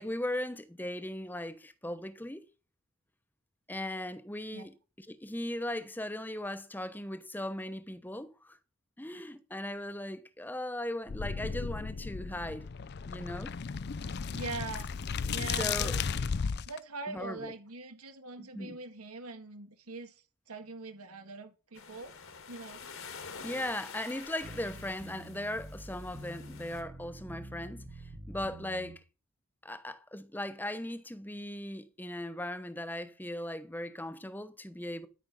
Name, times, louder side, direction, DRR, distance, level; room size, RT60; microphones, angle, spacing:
voice 1, 0.0-2.4 3.7-4.7 5.0-8.6 9.0-12.7 13.1-13.5 15.6-16.0 17.1-17.5 18.5-18.8 23.4-29.0 29.6-35.1, left 1 dB, 10° left, 0.8 m, -38 dB
sound 1, 11.1-16.8, left 5 dB, 50° left, 0.4 m, -35 dB
voice 2, 14.3-14.9 15.3-15.9 16.7-22.1 22.5-22.8, right 3 dB, 90° right, 1.9 m, -42 dB
sound 2, 21.8-26.8, left 5 dB, 65° left, 1.9 m, -48 dB
sound 3, 24.4-29.0, right 1 dB, 30° right, 1.2 m, -47 dB
12.5 x 6.1 x 5.4 m
head